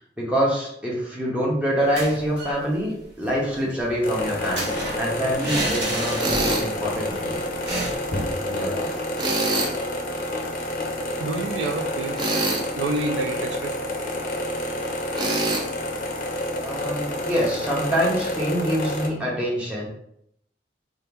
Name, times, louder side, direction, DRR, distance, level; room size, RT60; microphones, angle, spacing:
voice 1, 0.2-7.3 8.4-9.0 16.6-19.9, equal, 5° right, 0.8 m, -25 dB
sound 1, 1.8-2.6 2.9-3.0 3.3-6.7 7.0-7.1 7.7-8.4, right 1 dB, 70° right, 1.4 m, -31 dB
sound 2, 4.0-19.1, left 1 dB, 50° left, 0.5 m, -29 dB
Tools, 6.2-6.7 9.2-9.8 12.2-12.7 15.1-15.6, right 2 dB, 25° right, 0.4 m, -24 dB
voice 2, 11.2-12.2 12.7-13.8, right 2 dB, 85° right, 0.4 m, -28 dB
2.8 x 2.4 x 3.3 m
head